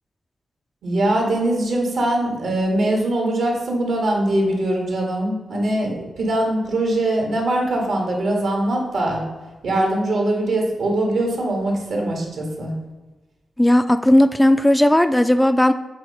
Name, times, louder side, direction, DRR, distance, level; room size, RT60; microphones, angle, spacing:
voice 1, 0.8-9.2 9.6-12.7, right 1 dB, 80° right, 0 dB, 1.9 m, -22 dB
voice 2, 13.6-15.7, left 1 dB, 10° left, 9 dB, 0.4 m, -15 dB
7.6 x 2.8 x 5.6 m, 1.2 s
cardioid pair, 65°, 0 cm